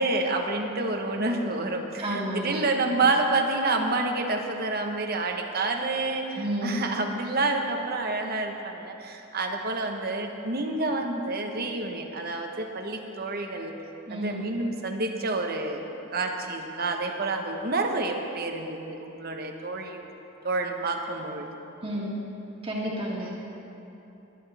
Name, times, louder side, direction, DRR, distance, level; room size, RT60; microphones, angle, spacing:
voice 1, 0.0-13.7 14.1-15.8 16.1-20.0 20.4-21.5, right 2 dB, 50° right, 3 dB, 1.2 m, -28 dB
voice 2, 2.0-2.6 6.4-6.8 14.1-14.4 21.8-22.1 22.6-23.4, equal, 30° right, -5 dB, 2.0 m, -31 dB
20.0 x 10.5 x 3.5 m, 3.0 s
head